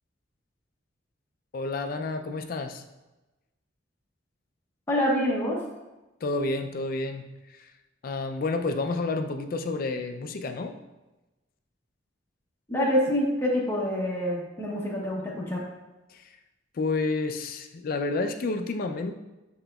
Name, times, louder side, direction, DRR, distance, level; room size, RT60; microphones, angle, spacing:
voice 1, 1.5-2.8 6.2-7.2 8.0-10.7 16.1-16.2 16.7-19.1, left 3 dB, 50° left, 6 dB, 0.3 m, -30 dB
voice 2, 4.9-5.6 12.7-15.6, equal, 15° left, -4 dB, 0.8 m, -26 dB
6.0 x 3.8 x 2.3 m, 1.1 s
head